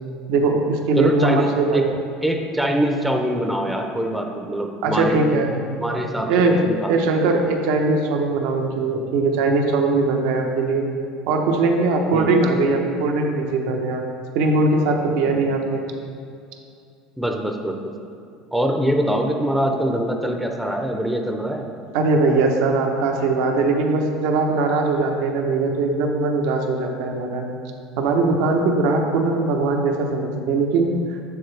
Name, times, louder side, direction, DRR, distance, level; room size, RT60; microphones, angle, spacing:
voice 1, 0.3-1.9 4.8-5.5 6.3-6.6 6.9-10.9 11.3-14.0 14.3-15.9 21.9-27.5 28.0-31.2, right 3 dB, 75° right, 2 dB, 0.8 m, -20 dB
voice 2, 1.0-1.9 2.2-5.2 5.8-7.2 12.1-12.3 17.2-17.8 18.5-21.7, equal, 5° right, 3 dB, 0.6 m, -23 dB
7.3 x 6.5 x 3.3 m, 2.4 s
supercardioid pair, 110°, 0 cm